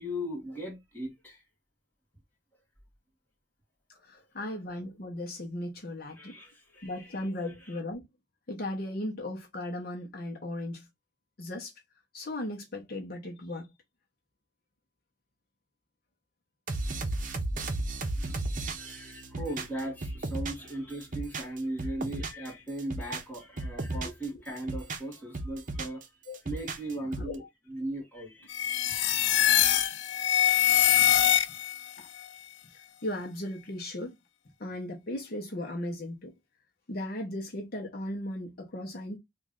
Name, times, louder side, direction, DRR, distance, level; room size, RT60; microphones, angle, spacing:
voice 1, 0.0-1.4 4.4-4.5 6.1-7.8 18.2-26.0 26.4-28.6 28.9-29.2, right 1 dB, 10° left, 1.5 m, -38 dB
voice 2, 4.1-6.3 6.8-8.1 8.5-10.9 11.4-11.7 12.1-13.7 26.3-26.4 27.2-27.3 30.8-31.1 32.0-32.1 33.0-34.1 34.6-36.3 36.9-39.2, left 1 dB, 55° left, 0.8 m, -36 dB
sound 1, 16.7-20.7 21.0-22.5 22.8-24.2 24.6-26.0 26.3-27.3, right 2 dB, 45° right, 0.8 m, -34 dB
sound 2, 28.5-31.9, left 11 dB, 85° left, 0.4 m, -23 dB
3.1 x 2.5 x 3.7 m
head